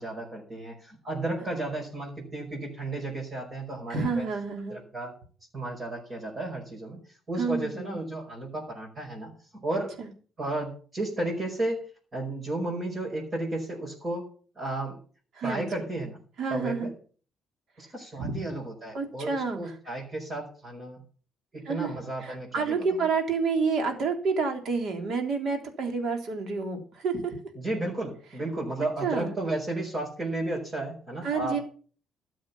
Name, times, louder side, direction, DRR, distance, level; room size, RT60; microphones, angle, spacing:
voice 1, 0.0-4.3 4.7-5.1 5.5-10.0 10.4-11.8 12.1-14.3 14.6-15.0 15.4-16.2 16.5-16.9 17.8-21.0 21.5-23.1 27.6-31.6, right 2 dB, 35° right, -3 dB, 5.3 m, -33 dB
voice 2, 3.9-4.8 7.4-8.1 10.0-10.1 15.3-15.7 16.4-16.9 18.2-18.4 18.9-19.8 21.7-21.9 22.2-27.4 29.0-29.4 31.2-31.6, right 4 dB, 60° right, 4 dB, 3.5 m, -29 dB
13.5 x 7.8 x 7.0 m, 0.42 s
cardioid pair, 100°, 0 cm